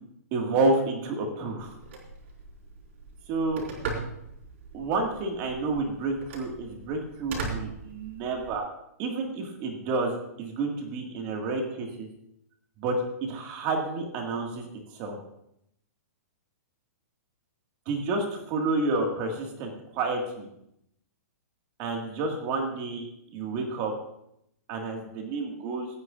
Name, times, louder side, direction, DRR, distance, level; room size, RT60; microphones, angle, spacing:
voice 1, 0.3-1.8 3.3-3.6 4.7-8.6 9.0-10.1 10.4-12.1 12.8-14.7 14.9-15.2 17.9-20.5 21.8-23.1 23.3-23.9 24.7-25.9, right 3 dB, 25° right, 2 dB, 1.9 m, -29 dB
Telephone, 1.6-8.6, right 4 dB, 45° right, 4.3 m, -40 dB
25.0 x 9.6 x 2.5 m, 0.79 s
hypercardioid pair, 175°, 9 cm